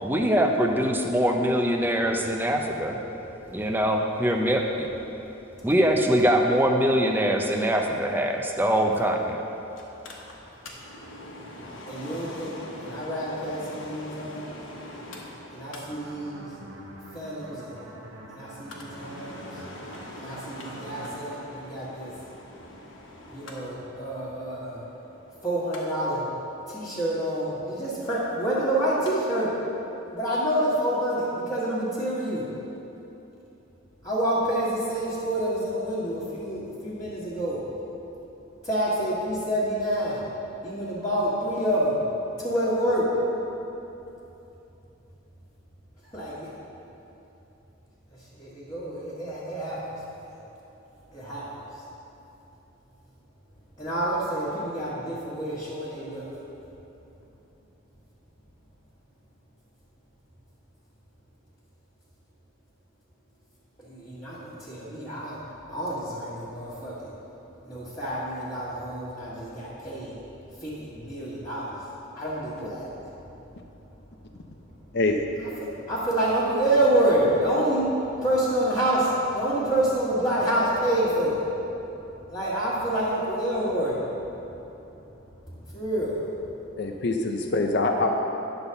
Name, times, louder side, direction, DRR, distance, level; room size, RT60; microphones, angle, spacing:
voice 1, 0.0-3.0 3.5-4.9 5.6-9.4, equal, 10° right, 2 dB, 0.5 m, -23 dB
Mechanical fan, 9.8-29.1 29.5-29.6, left 1 dB, 75° left, 1.1 m, -44 dB
voice 2, 11.9-14.6 15.5-16.5 17.1-17.9 18.3-19.6 20.2-22.1 23.3-24.8 25.4-26.3 26.7-29.5 30.1-32.4 34.0-37.6 38.6-40.2 40.6-42.0 42.4-43.0 46.0-46.5 48.4-49.8 50.1-50.3 51.1-51.4 53.8-56.3 63.8-65.4 65.7-67.1 67.6-70.2 70.6-71.8 72.1-72.9 75.9-77.9 78.2-81.4 82.3-84.0 85.7-86.2, right 1 dB, 25° left, -13 dB, 1.6 m, -27 dB
sound 1, 15.8-21.5, right 1 dB, 90° right, 1.1 m, -45 dB
voice 3, 86.8-88.1, left 2 dB, 55° left, 3 dB, 0.6 m, -24 dB
9.9 x 4.0 x 6.8 m, 3.0 s
head